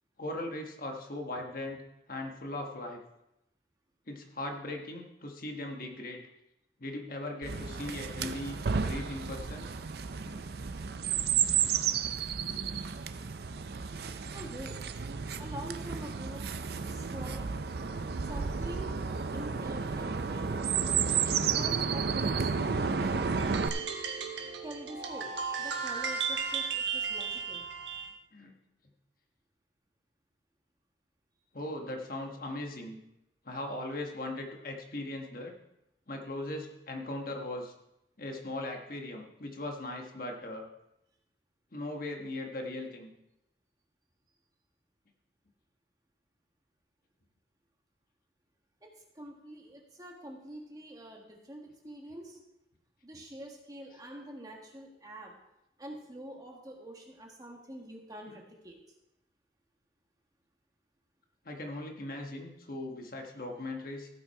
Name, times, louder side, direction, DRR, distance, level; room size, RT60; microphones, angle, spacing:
voice 1, 0.2-1.8 2.1-3.0 4.1-6.2 6.8-9.7 10.2-10.4 28.3-28.5 31.5-33.0 33.4-35.5 36.1-37.7 38.2-40.7 41.7-43.1 53.9-54.0 58.2-58.4 61.4-64.1, left 1 dB, 50° left, 2 dB, 1.3 m, -39 dB
Chirp tweet, 7.4-23.7, right 6 dB, 55° right, 0.5 m, -32 dB
voice 2, 14.3-14.8 15.4-16.5 16.9-17.4 18.2-19.0 19.3-20.6 21.2-23.4 24.6-25.3 25.6-27.6 48.8-48.9 49.1-52.4 53.0-55.3 55.8-58.8, right 1 dB, 20° right, 0 dB, 1.5 m, -45 dB
sound 1, 23.4-28.1, right 5 dB, 75° right, 1.2 m, -35 dB
15.5 x 5.9 x 4.7 m, 0.88 s
head